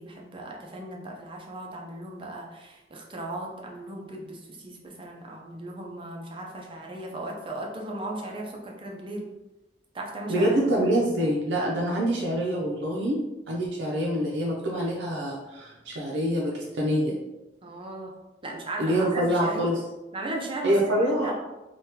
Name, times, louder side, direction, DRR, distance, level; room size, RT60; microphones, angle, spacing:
voice 1, 0.0-9.3 9.9-10.5 17.6-18.1 18.4-19.7 20.1-20.8 21.0-21.3, right 1 dB, 30° right, 0 dB, 0.5 m, -37 dB
voice 2, 10.3-13.2 13.5-17.2 18.8-19.8 20.6-21.3, equal, 85° right, -3 dB, 0.5 m, -25 dB
3.4 x 2.2 x 2.8 m, 1.0 s
head